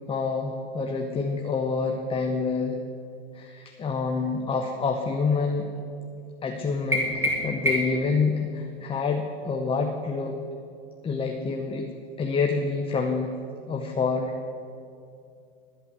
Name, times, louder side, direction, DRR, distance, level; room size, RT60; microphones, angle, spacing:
voice 1, 0.1-2.8 3.3-5.7 6.4-10.4 11.0-11.9 12.2-13.3 13.7-14.3, left 4 dB, 20° left, 3 dB, 0.8 m, -27 dB
sound 1, 6.9-8.1, equal, 10° right, 2.3 m, -26 dB
12.5 x 5.7 x 8.4 m, 2.5 s
hypercardioid pair, 100°, 30 cm